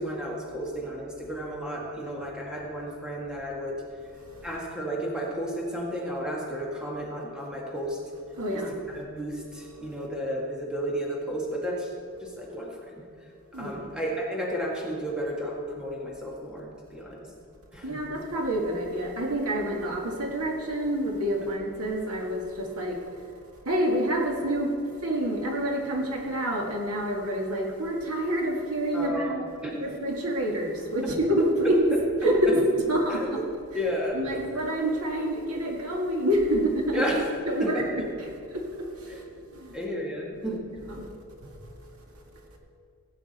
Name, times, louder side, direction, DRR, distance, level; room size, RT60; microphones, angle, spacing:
voice 1, 0.0-3.8 4.4-8.0 8.5-8.6 8.9-11.9 12.2-12.9 13.5-17.3 17.7-18.0 28.9-29.3 29.6-29.8 32.5-32.6 33.1-33.3 33.7-34.4 36.9-37.2 37.6-38.1 39.1-39.2 39.7-40.7, equal, 5° right, -3 dB, 1.7 m, -32 dB
voice 2, 4.1-4.6 8.3-9.1 9.6-9.9 13.5-13.9 17.8-23.3 23.6-29.4 29.7-33.4 34.1-37.0 37.5-39.8 40.3-40.6 40.9-41.1 41.4-41.8, right 1 dB, 85° right, 1 dB, 1.9 m, -28 dB
17.0 x 8.7 x 4.3 m, 2.3 s
head